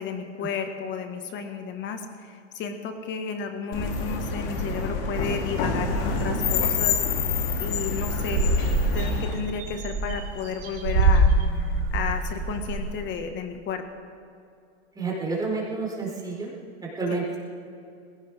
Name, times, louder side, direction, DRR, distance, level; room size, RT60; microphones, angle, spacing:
voice 1, 0.0-8.5 8.9-13.8 17.1-17.2, left 6 dB, 35° left, 6 dB, 1.8 m, -33 dB
sound 1, 3.7-9.3, left 4 dB, 60° left, 3.2 m, -27 dB
sound 2, 5.9-6.6 7.1-7.2 7.4-7.7 8.0-13.0, right 2 dB, 65° right, 3.5 m, -25 dB
voice 2, 14.9-16.5 16.8-17.4, right 3 dB, 10° right, -4 dB, 5.0 m, -29 dB
20.0 x 17.5 x 3.7 m, 2.5 s
supercardioid pair, 130°, 33 cm